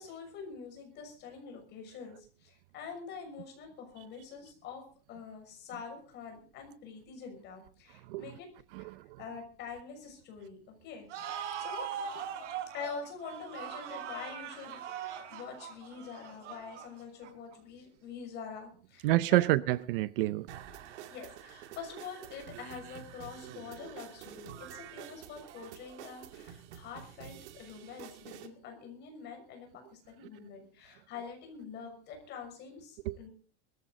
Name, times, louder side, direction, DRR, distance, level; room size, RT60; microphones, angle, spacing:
voice 1, 0.0-4.8 5.1-8.5 8.8-8.9 9.2-11.1 11.6-11.9 12.7-19.5 21.1-33.3, left 6 dB, 30° left, 6.3 m, -45 dB
voice 2, 8.7-9.0 19.0-20.5 33.1-33.2, right 17 dB, 50° right, 0.6 m, -28 dB
sound 1, 11.1-17.5, right 8 dB, 90° right, 4.5 m, -41 dB
sound 2, 20.5-28.5, right 10 dB, 75° right, 2.4 m, -48 dB
21.0 x 14.0 x 3.9 m
supercardioid pair, 170°, 35 cm